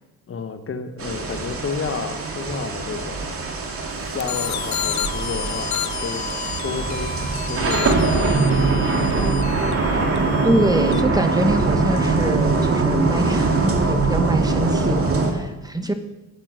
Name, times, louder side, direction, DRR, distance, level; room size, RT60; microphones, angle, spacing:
voice 1, 0.3-3.5 4.1-6.3 6.6-7.1 7.5-8.9, left 5 dB, 45° left, 7 dB, 1.6 m, -31 dB
sound 1, 1.0-15.3, right 3 dB, 50° right, 2.4 m, -22 dB
sound 2, 4.2-11.0, left 12 dB, 65° left, 0.7 m, -32 dB
sound 3, 4.4-14.4, right 1 dB, 15° left, 2.5 m, -35 dB
voice 2, 10.4-15.9, right 1 dB, 10° right, 7 dB, 1.5 m, -24 dB
10.5 x 8.8 x 6.7 m, 1.1 s
cardioid pair, 90°, 30 cm